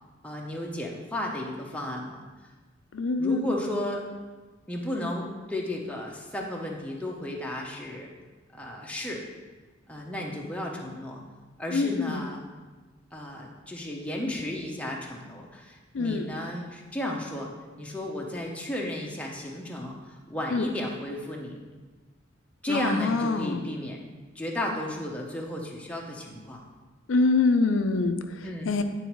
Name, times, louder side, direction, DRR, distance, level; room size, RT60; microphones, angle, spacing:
voice 1, 0.2-2.2 3.2-4.0 4.7-8.1 8.5-9.2 9.9-11.2 11.6-12.4 13.1-17.5 17.8-21.6 22.6-24.1 24.3-26.6 28.4-28.7, left 1 dB, 5° left, -1 dB, 0.8 m, -33 dB
voice 2, 2.9-3.4 11.7-12.2 15.9-16.3 20.5-20.6 22.7-23.6 27.1-28.8, left 3 dB, 85° left, 8 dB, 0.5 m, -25 dB
9.2 x 4.0 x 4.6 m, 1.3 s
head